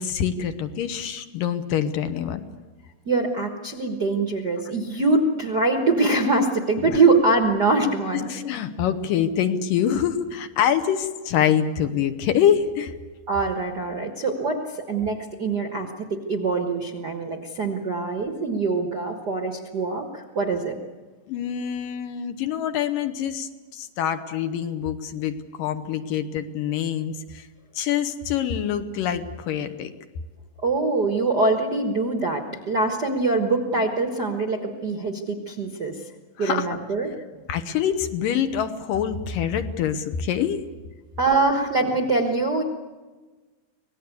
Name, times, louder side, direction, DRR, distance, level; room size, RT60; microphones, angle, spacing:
voice 1, 0.0-2.4 6.8-7.0 8.1-12.9 21.3-27.5 27.8-29.9 36.4-36.8 37.5-40.6, left 9 dB, 75° left, 8 dB, 2.6 m, -25 dB
voice 2, 3.0-8.2 13.3-20.7 30.6-36.0 36.4-37.4 41.2-42.6, right 3 dB, 50° right, 3 dB, 1.2 m, -23 dB
25.5 x 18.5 x 8.4 m, 1.3 s
omnidirectional pair, 4.2 m